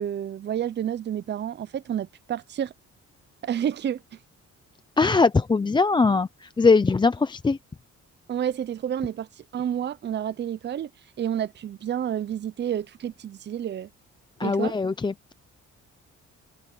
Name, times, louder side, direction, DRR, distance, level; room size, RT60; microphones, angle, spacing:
voice 1, 0.0-2.7 3.4-4.0 8.3-10.9 11.2-13.9 14.4-14.7, right 9 dB, 35° right, 0.5 m, -30 dB
voice 2, 5.0-7.6 14.4-15.3, left 4 dB, 15° left, 0.4 m, -21 dB
cardioid pair, 125°, 30 cm